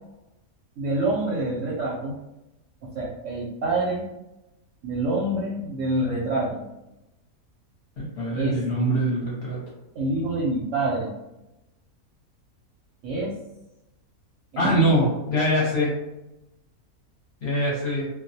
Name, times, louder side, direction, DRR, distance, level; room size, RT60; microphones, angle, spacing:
voice 1, 0.8-2.1 2.8-4.0 4.8-6.6 8.4-8.6 10.0-11.1 13.0-13.3 14.5-15.0, right 2 dB, 70° right, -4 dB, 0.8 m, -26 dB
voice 2, 8.0-9.6 14.6-15.9 17.4-18.1, equal, 55° left, -5 dB, 0.8 m, -23 dB
2.4 x 2.1 x 2.6 m, 0.93 s
omnidirectional pair, 1.6 m